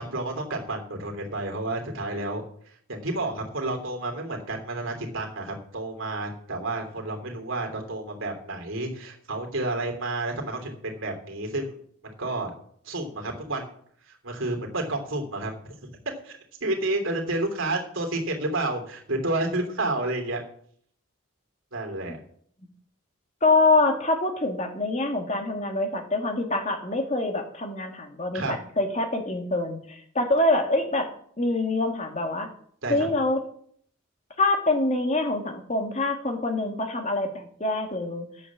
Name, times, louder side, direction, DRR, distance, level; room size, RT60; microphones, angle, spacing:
voice 1, 0.0-2.4 2.9-11.8 12.0-12.5 12.8-13.7 14.1-15.9 16.2-20.4 21.7-22.2 28.3-28.5 32.8-33.0, right 2 dB, 65° right, 3 dB, 3.1 m, -30 dB
voice 2, 23.4-31.1 31.4-32.5 32.9-33.4 34.4-38.3, left 2 dB, 35° left, 5 dB, 1.7 m, -25 dB
10.5 x 8.5 x 7.2 m, 0.62 s
head